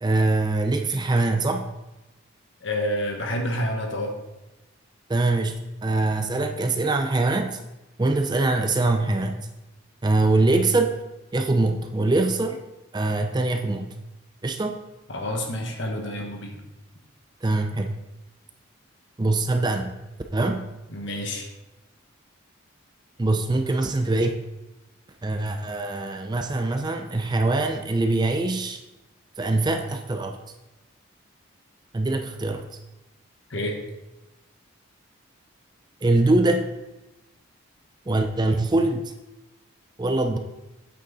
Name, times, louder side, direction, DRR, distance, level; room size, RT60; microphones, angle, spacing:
voice 1, 0.0-1.7 5.1-5.5 5.8-7.6 8.0-9.5 10.0-10.9 11.3-12.6 12.9-13.9 14.4-14.8 17.4-17.9 19.2-19.9 20.3-20.6 23.2-24.4 25.2-28.8 29.4-30.4 31.9-32.6 36.0-36.7 38.1-39.1 40.0-40.4, right 2 dB, 20° right, 5 dB, 0.4 m, -23 dB
voice 2, 2.6-4.1 15.1-16.6 20.9-21.5 33.5-33.8, left 1 dB, 55° left, 2 dB, 1.3 m, -28 dB
8.5 x 6.2 x 4.0 m, 0.99 s
head